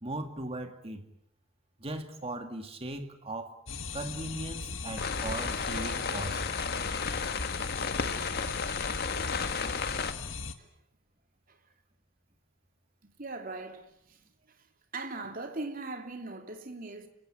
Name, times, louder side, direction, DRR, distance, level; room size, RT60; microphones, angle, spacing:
voice 1, 0.0-1.1 1.8-3.6 3.9-6.4, right 1 dB, 30° right, 2.6 m, -38 dB
sound 1, 3.7-10.5, left 4 dB, 80° left, 1.8 m, -39 dB
sound 2, 5.0-10.1, left 5 dB, 55° left, 1.6 m, -33 dB
voice 2, 13.0-14.2 14.9-17.1, right 2 dB, 45° right, 2.8 m, -40 dB
29.0 x 17.0 x 9.7 m
head